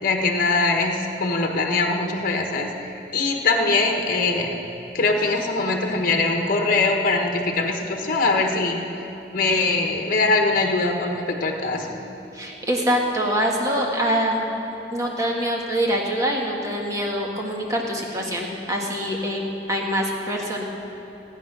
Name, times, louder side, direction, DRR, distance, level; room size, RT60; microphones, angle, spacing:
voice 1, 0.0-4.5 4.9-8.8 9.3-12.0, left 3 dB, 50° left, 2 dB, 1.2 m, -22 dB
voice 2, 12.3-14.4 14.9-20.6, equal, 20° right, -1 dB, 1.7 m, -24 dB
16.5 x 9.4 x 6.1 m, 2.9 s
head